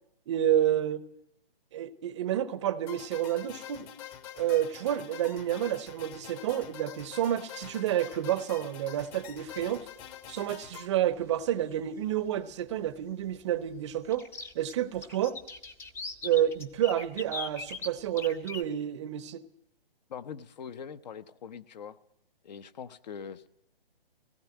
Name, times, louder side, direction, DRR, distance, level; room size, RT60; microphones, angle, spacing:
voice 1, 0.3-1.0 1.7-3.9 4.4-9.9 10.3-14.2 14.5-15.4 16.2-19.4, right 11 dB, 30° right, 0.8 m, -29 dB
sound 1, 2.9-10.9, left 10 dB, 25° left, 1.1 m, -46 dB
sound 2, 9.3-9.6 11.2-11.3 11.7-11.8 14.1-18.6, left 4 dB, 10° left, 0.7 m, -40 dB
voice 2, 20.1-22.0 22.4-23.5, left 7 dB, 45° left, 0.9 m, -42 dB
17.5 x 16.5 x 9.1 m
hypercardioid pair, 140°, 29 cm